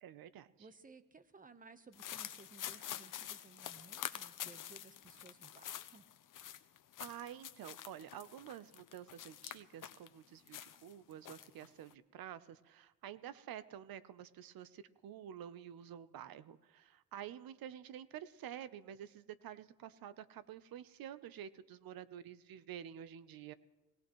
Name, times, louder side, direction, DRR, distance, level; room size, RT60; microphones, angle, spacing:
voice 1, 0.0-0.5 7.0-23.5, right 10 dB, 60° right, 15 dB, 0.8 m, -49 dB
voice 2, 0.6-6.0, right 4 dB, 20° right, 11 dB, 1.0 m, -59 dB
sound 1, 1.9-10.1 10.5-11.9, left 11 dB, 50° left, 0.8 m, -47 dB
21.5 x 18.0 x 3.1 m, 1.1 s
cardioid pair, 95°, 39 cm